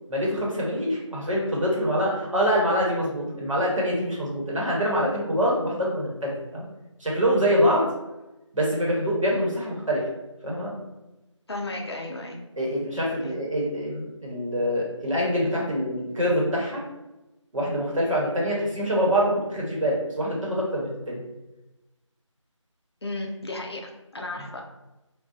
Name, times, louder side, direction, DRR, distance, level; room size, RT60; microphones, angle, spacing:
voice 1, 0.1-6.6 7.0-7.9 8.5-10.1 10.4-10.7 12.6-16.8 17.5-21.2, equal, 80° right, -4 dB, 1.0 m, -25 dB
voice 2, 11.5-12.4 13.2-13.4 23.0-24.6, left 2 dB, 55° left, 1 dB, 0.5 m, -34 dB
2.5 x 2.3 x 2.4 m, 1.0 s
figure-of-eight pair, 175°, 16 cm